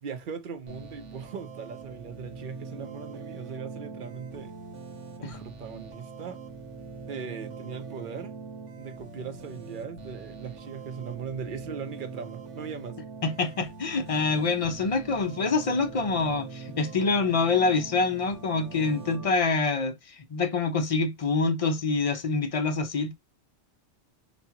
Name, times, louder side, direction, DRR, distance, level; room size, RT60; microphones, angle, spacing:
voice 1, 0.0-4.5 5.2-6.4 7.1-8.3 8.8-13.0, right 6 dB, 50° right, 0.7 m, -39 dB
sound 1, 0.7-19.3, right 4 dB, 80° right, 1.3 m, -43 dB
voice 2, 13.2-23.1, left 4 dB, 45° left, 0.5 m, -26 dB
4.1 x 2.3 x 2.8 m
omnidirectional pair, 1.2 m